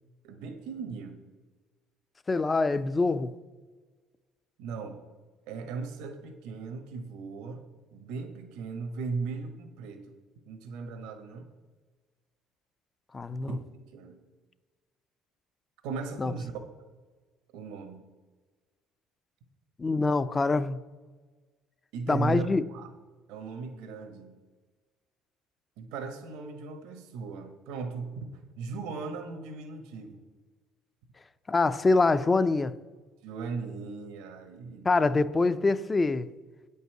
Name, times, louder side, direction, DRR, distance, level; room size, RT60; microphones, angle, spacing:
voice 1, 0.2-1.2 4.6-5.0 5.5-7.7 7.9-10.2 10.4-11.5 13.3-13.6 13.9-14.2 15.8-16.5 17.5-18.0 21.9-22.9 23.3-24.3 25.8-28.3 28.6-30.2 33.2-35.2, right 4 dB, 85° right, 1.3 m, -37 dB
voice 2, 2.3-3.3 13.1-13.6 16.2-16.3 19.8-20.8 22.1-22.6 31.5-32.7 34.8-36.3, left 3 dB, 20° left, 0.5 m, -25 dB
8.8 x 5.4 x 7.8 m
cardioid pair, 125°, 0 cm